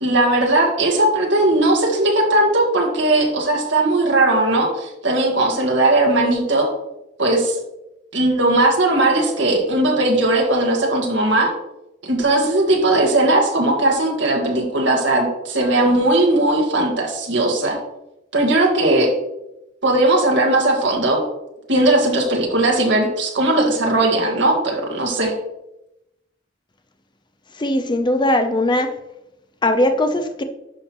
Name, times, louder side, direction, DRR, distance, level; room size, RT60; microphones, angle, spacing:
voice 1, 0.0-6.7 7.2-7.6 8.1-11.5 12.0-17.8 18.3-19.1 19.8-21.2 21.7-25.3, right 2 dB, 70° right, 0 dB, 1.8 m, -18 dB
voice 2, 27.6-28.9 29.6-30.4, left 1 dB, 25° left, 8 dB, 0.6 m, -19 dB
10.5 x 5.6 x 3.1 m, 0.90 s
head